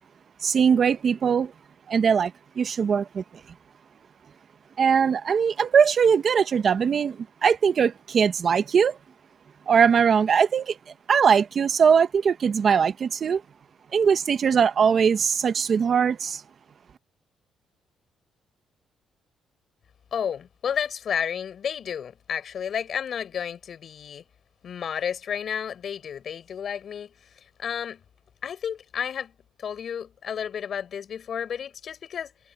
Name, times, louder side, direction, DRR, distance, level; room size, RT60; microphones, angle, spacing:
voice 1, 0.4-1.5 1.9-3.2 4.8-9.0 9.7-10.8 11.1-13.4 13.9-16.4, right 7 dB, 50° right, 1.4 m, -21 dB
voice 2, 20.1-24.2 24.6-27.1 27.6-28.0 28.4-32.5, left 8 dB, 60° left, 5.8 m, -32 dB
cardioid pair, 90°, 0 cm